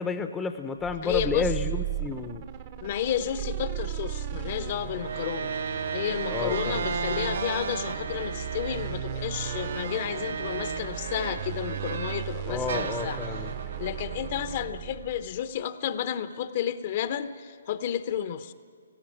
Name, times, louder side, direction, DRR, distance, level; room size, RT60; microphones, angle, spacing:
voice 1, 0.0-2.4 6.3-6.9 12.5-13.5, left 5 dB, 10° left, 8 dB, 0.8 m, -31 dB
sound 1, 0.8-15.4, right 10 dB, 35° right, 1.0 m, -36 dB
voice 2, 1.0-1.5 2.8-5.5 5.9-13.2 13.8-18.5, left 10 dB, 40° left, 12 dB, 0.9 m, -32 dB
sound 2, 4.9-12.3 12.7-15.1, right 5 dB, 60° right, 1.1 m, -34 dB
18.5 x 14.5 x 9.8 m, 2.1 s
figure-of-eight pair, 140°, 0 cm